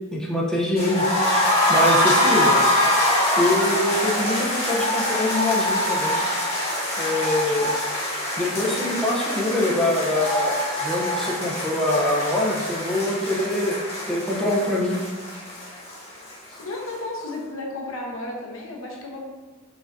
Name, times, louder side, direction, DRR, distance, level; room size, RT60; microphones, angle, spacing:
voice 1, 0.1-2.5 3.4-6.2 7.0-7.8 8.4-15.0, left 1 dB, 5° left, -5 dB, 0.6 m, -24 dB
sound 1, 0.8-16.6 16.9-17.0 17.3-17.4, left 1 dB, 30° left, 1.3 m, -24 dB
voice 2, 16.6-19.2, left 2 dB, 70° left, -1 dB, 0.8 m, -33 dB
5.0 x 3.8 x 2.5 m, 1.3 s
head